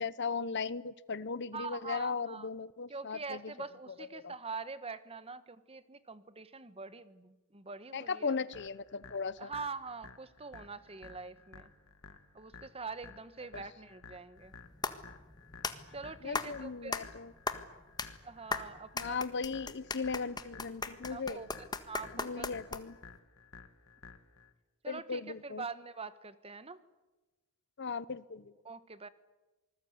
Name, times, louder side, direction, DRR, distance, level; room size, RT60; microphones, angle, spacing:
voice 1, 0.0-3.4 4.1-4.3 7.9-9.5 13.5-13.6 16.2-17.3 19.0-21.4 22.1-23.0 24.9-25.6 27.8-28.5, left 5 dB, 55° left, 18 dB, 0.8 m, -37 dB
voice 2, 1.5-2.5 2.9-8.4 9.4-11.7 12.3-14.5 15.9-17.0 18.2-19.2 21.1-22.5 24.8-26.8 28.6-29.1, right 4 dB, 25° right, 14 dB, 1.2 m, -44 dB
sound 1, 8.5-24.5, left 4 dB, 70° left, 2.1 m, -54 dB
sound 2, 14.4-23.1, left 3 dB, 20° left, 1.5 m, -39 dB
27.0 x 20.0 x 9.4 m, 1.1 s
head